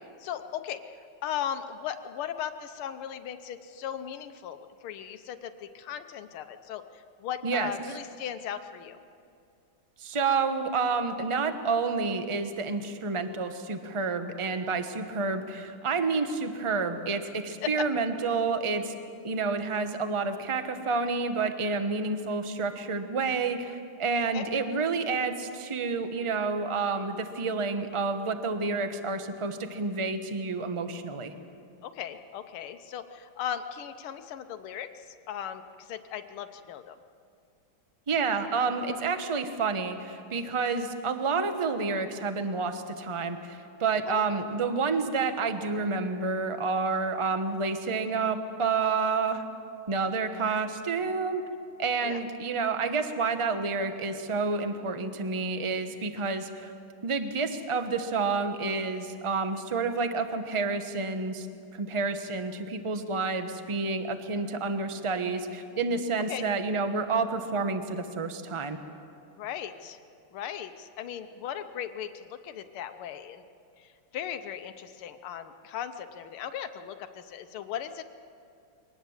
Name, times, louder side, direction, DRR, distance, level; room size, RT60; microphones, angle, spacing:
voice 1, 0.2-0.8 1.2-4.6 4.8-9.0 17.6-17.9 24.3-24.4 31.8-37.0 44.1-44.2 52.0-52.2 66.3-66.4 69.4-70.0 70.3-73.4 73.8-78.0, left 9 dB, 85° left, 8 dB, 1.7 m, -37 dB
voice 2, 10.0-18.9 19.2-31.3 38.1-49.4 49.9-51.4 51.8-56.7 57.0-61.5 61.7-68.8, right 4 dB, 25° right, 8 dB, 0.6 m, -29 dB
23.0 x 18.5 x 7.2 m, 2.4 s
omnidirectional pair, 2.3 m